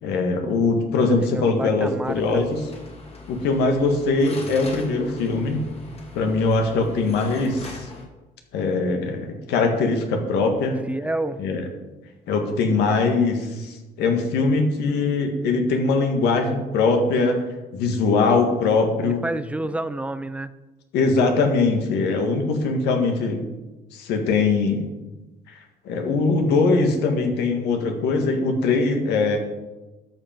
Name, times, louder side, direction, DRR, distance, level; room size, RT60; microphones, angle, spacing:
voice 1, 0.0-2.6 3.3-5.6 6.1-7.9 8.5-10.8 11.4-11.6 12.3-17.4 17.7-19.2 20.9-23.4 23.9-24.9 25.5-29.4, left 3 dB, 80° left, 4 dB, 1.8 m, -21 dB
voice 2, 1.3-2.4 10.9-11.4 19.0-20.5, right 1 dB, 5° right, 13 dB, 0.5 m, -29 dB
sound 1, 2.0-8.0, left 3 dB, 35° left, 2.5 m, -41 dB
13.0 x 5.7 x 5.2 m, 1.1 s
cardioid pair, 110°, 17 cm